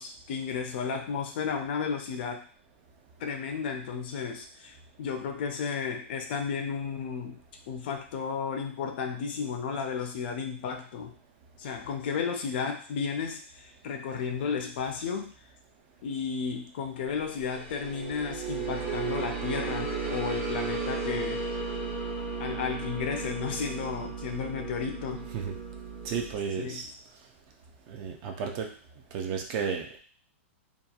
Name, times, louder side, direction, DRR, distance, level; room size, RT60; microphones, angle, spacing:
voice 1, 0.0-2.4 3.2-7.4 7.7-11.1 11.6-15.3 16.0-21.5 22.4-25.3 26.6-26.8, left 6 dB, 50° left, 4 dB, 0.4 m, -33 dB
sound 1, 17.3-26.4, right 4 dB, 75° right, 1.1 m, -34 dB
voice 2, 26.0-26.9 27.9-28.7 29.1-30.0, right 6 dB, 35° right, 3 dB, 0.4 m, -33 dB
2.8 x 2.2 x 2.3 m, 0.43 s
supercardioid pair, 160°, 7 cm